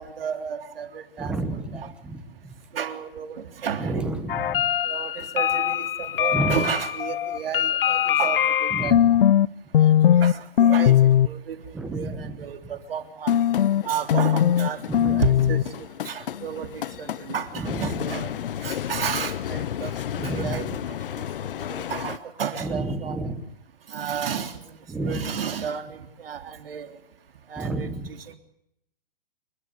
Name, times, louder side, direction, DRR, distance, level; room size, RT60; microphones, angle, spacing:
voice 1, 0.0-1.3 1.7-1.9 2.7-4.1 4.8-9.0 9.8-10.9 11.2-11.6 11.9-13.3 13.8-15.6 16.0-18.3 18.6-20.0 20.2-20.7 21.2-21.3 21.7-23.3 23.9-24.6 25.0-26.9 27.5-27.9 28.3-28.4, right 7 dB, 75° right, 8 dB, 3.4 m, -32 dB
voice 2, 1.2-2.5 3.8-4.7 6.3-6.7 8.7-9.2 11.7-12.4 14.9-15.5 17.6-18.1 20.2-20.6 22.6-23.4 24.9-25.3 27.6-28.1, right 2 dB, 5° right, 9 dB, 0.9 m, -30 dB
sound 1, 4.3-9.5 9.7-10.3 10.6-11.3 13.3-22.2, left 10 dB, 65° left, 0.8 m, -22 dB
28.5 x 12.5 x 9.7 m, 0.78 s
hypercardioid pair, 180°, 29 cm